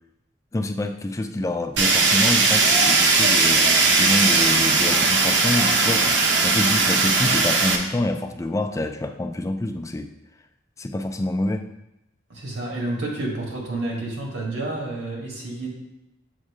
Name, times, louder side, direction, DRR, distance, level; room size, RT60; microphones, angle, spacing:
voice 1, 0.5-6.2 6.4-10.1 10.8-11.7, left 1 dB, 15° left, 6 dB, 0.4 m, -27 dB
Fire, 1.8-7.8, right 3 dB, 65° right, 0.7 m, -18 dB
voice 2, 12.3-15.7, right 2 dB, 80° right, -2 dB, 1.8 m, -29 dB
7.4 x 2.7 x 4.8 m, 0.86 s
head